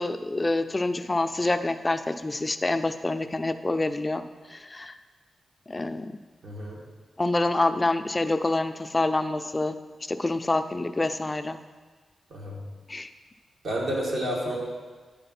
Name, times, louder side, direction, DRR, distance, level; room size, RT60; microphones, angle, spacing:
voice 1, 0.0-4.2 4.5-5.0 5.7-6.1 7.2-9.8 10.1-11.6 12.9-13.1, left 2 dB, 25° left, 9 dB, 0.4 m, -27 dB
voice 2, 6.4-6.8 12.3-12.6 13.6-14.6, right 1 dB, 60° right, -3 dB, 2.1 m, -30 dB
10.0 x 3.8 x 5.8 m, 1.4 s
cardioid pair, 85°, 0 cm